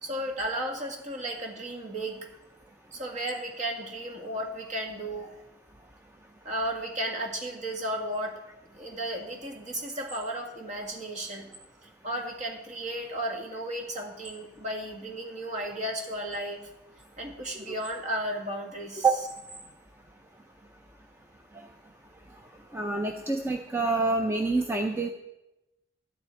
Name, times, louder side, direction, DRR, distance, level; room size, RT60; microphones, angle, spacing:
voice 1, 0.0-2.3 2.9-5.4 6.4-8.4 8.7-11.5 12.0-16.7 17.2-19.1, right 1 dB, 40° right, 1 dB, 1.9 m, -34 dB
voice 2, 22.7-25.1, right 3 dB, 15° right, 3 dB, 0.6 m, -26 dB
12.0 x 9.9 x 4.5 m, 0.93 s
head